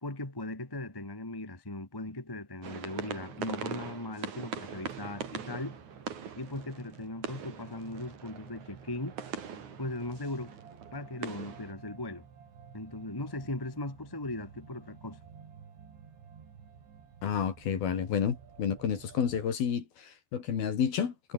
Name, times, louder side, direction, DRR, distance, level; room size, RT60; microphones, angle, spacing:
voice 1, 0.0-5.8 6.3-9.2 9.8-10.5 10.9-12.2 12.7-15.2, left 2 dB, 10° left, 1.3 m, -38 dB
sound 1, 2.6-11.7, right 7 dB, 45° right, 3.7 m, -42 dB
sound 2, 4.7-19.5, right 7 dB, 75° right, 6.7 m, -53 dB
voice 2, 17.2-21.3, left 7 dB, 55° left, 4.6 m, -30 dB
omnidirectional pair, 5.3 m